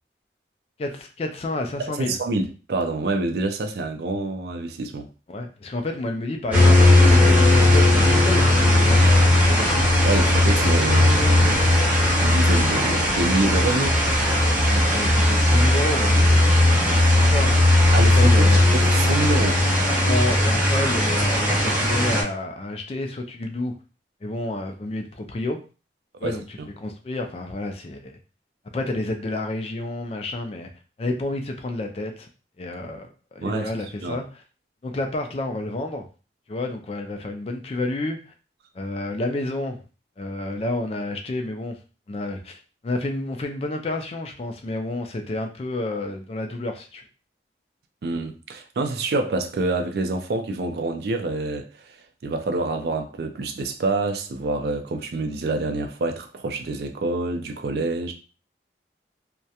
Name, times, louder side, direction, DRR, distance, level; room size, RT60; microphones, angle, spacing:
voice 1, 0.8-2.2 5.3-9.7 14.7-16.5 16.7-17.7 18.1-18.7 20.0-23.7 24.2-25.6 26.2-28.2 28.6-30.7 31.0-32.3 32.6-34.2 34.8-36.1 36.5-38.3 38.7-39.8 40.2-41.8 42.1-42.6 42.8-47.0, left 2 dB, 35° left, 0.3 m, -30 dB
voice 2, 2.0-5.1 10.0-14.0 17.9-19.6 26.2-26.4 33.4-34.2 48.0-51.7 52.2-58.1, right 2 dB, 60° right, 0.4 m, -27 dB
sound 1, 6.5-22.2, left 1 dB, 5° right, 0.6 m, -17 dB
2.3 x 2.1 x 2.7 m
head